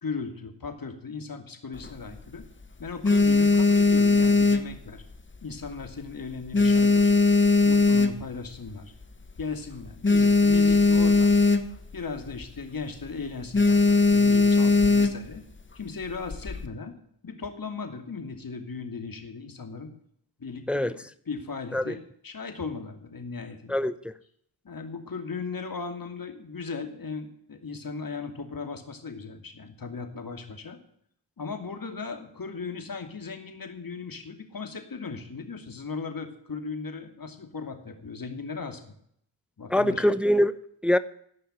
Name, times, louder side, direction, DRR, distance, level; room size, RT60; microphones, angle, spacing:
voice 1, 0.0-2.4 2.8-5.0 5.4-7.2 7.6-8.9 9.4-11.5 11.9-15.4 15.7-16.9 17.2-19.9 20.4-21.0 21.3-23.8 24.6-30.8 31.4-39.0 39.6-40.0, left 4 dB, 40° left, 2.7 m, -37 dB
sound 1, 1.7-2.5 2.9-5.3 5.6-6.0 6.3-8.5 9.0-9.1 9.3-9.4 9.7-11.9 12.2-12.5 12.8-13.1 13.5-15.4 16.1-16.7, left 3 dB, 25° left, 1.3 m, -20 dB
voice 2, 23.7-24.1 39.7-41.0, equal, ahead, 0.7 m, -24 dB
15.5 x 5.7 x 8.9 m
supercardioid pair, 50°, 50 cm